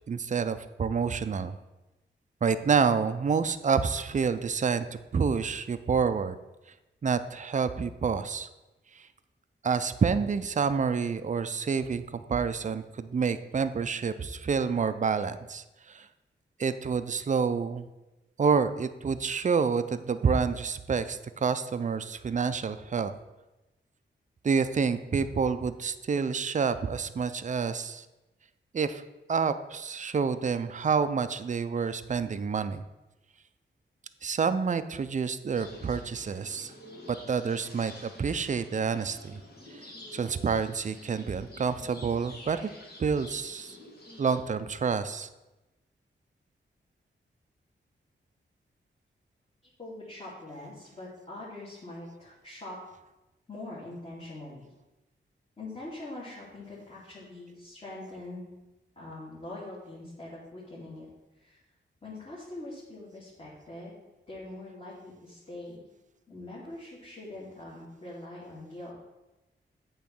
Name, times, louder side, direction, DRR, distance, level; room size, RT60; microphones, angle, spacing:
voice 1, 0.1-1.5 2.4-6.4 7.0-8.5 8.9-9.1 9.6-16.1 16.6-17.9 18.4-23.1 24.4-28.1 28.7-29.0 29.3-32.8 34.2-36.7 37.1-39.4 39.7-39.8 40.1-42.6 43.0-43.8 44.2-45.3, right 5 dB, 40° right, 11 dB, 0.5 m, -28 dB
sound 1, 35.5-44.4, left 2 dB, 50° left, 1.8 m, -49 dB
voice 2, 49.6-52.8 53.5-54.6 55.6-58.5 59.0-61.1 61.3-61.6 62.0-63.9 64.3-65.9 66.3-68.9, left 2 dB, 30° left, -9 dB, 2.4 m, -43 dB
8.3 x 3.1 x 6.0 m, 1.0 s
cardioid pair, 65°, 20 cm